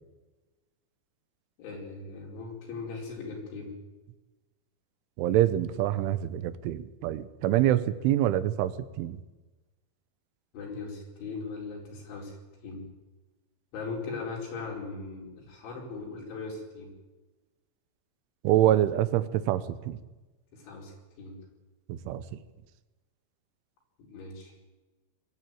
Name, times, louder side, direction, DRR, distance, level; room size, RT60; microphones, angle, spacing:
voice 1, 1.6-3.7 10.5-12.4 12.6-12.9 13.7-16.9 20.5-21.4 24.1-24.5, left 4 dB, 75° left, -1 dB, 7.1 m, -39 dB
voice 2, 5.2-9.2 18.4-20.0 21.9-22.4, right 13 dB, 90° right, 14 dB, 3.4 m, -26 dB
22.0 x 13.0 x 9.3 m, 1.2 s
omnidirectional pair, 5.4 m